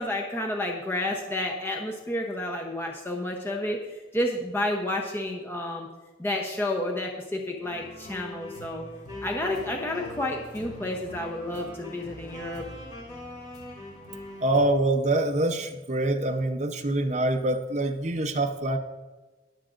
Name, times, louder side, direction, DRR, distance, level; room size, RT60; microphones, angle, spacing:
voice 1, 0.0-5.9 6.2-8.8 9.2-12.7, left 1 dB, 10° left, 1 dB, 0.8 m, -30 dB
sound 1, 7.6-14.7, left 1 dB, 40° left, 3.3 m, -42 dB
voice 2, 14.4-18.8, right 2 dB, 35° right, 5 dB, 0.7 m, -25 dB
21.5 x 7.4 x 2.6 m, 1.2 s
head